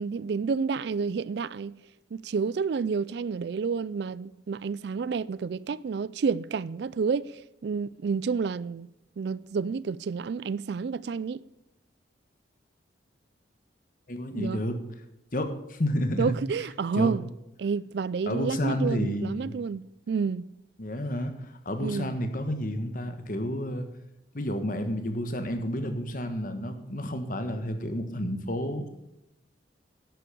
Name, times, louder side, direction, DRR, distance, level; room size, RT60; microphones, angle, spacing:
voice 1, 0.0-1.7 2.1-8.9 9.2-11.4 14.3-14.6 16.2-17.2 17.6-20.5 21.8-22.1, right 5 dB, 60° right, 0.3 m, -30 dB
voice 2, 14.1-14.8 15.3-16.3 16.9-17.1 18.3-19.5 20.8-23.9 24.3-28.9, equal, 45° left, 1.4 m, -30 dB
11.0 x 8.3 x 6.9 m
head